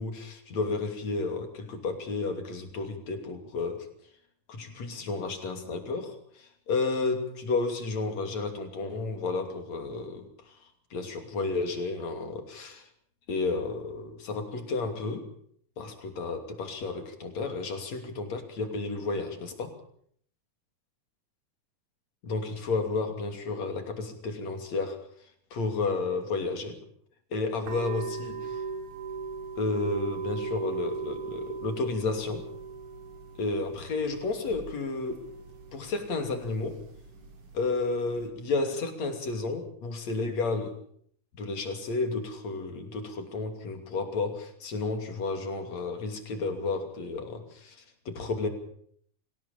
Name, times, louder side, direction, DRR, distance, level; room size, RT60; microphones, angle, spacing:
voice 1, 0.0-3.9 4.5-10.3 10.9-12.9 13.3-15.3 15.8-19.8 22.2-25.0 25.5-26.8 27.3-28.6 29.6-32.5 33.4-35.3 35.7-36.8 37.5-40.8 41.3-48.5, left 3 dB, 60° left, 6 dB, 4.0 m, -32 dB
sound 1, 27.6-38.3, right 5 dB, 60° right, 4.6 m, -39 dB
25.0 x 17.0 x 7.2 m, 0.64 s
omnidirectional pair, 3.6 m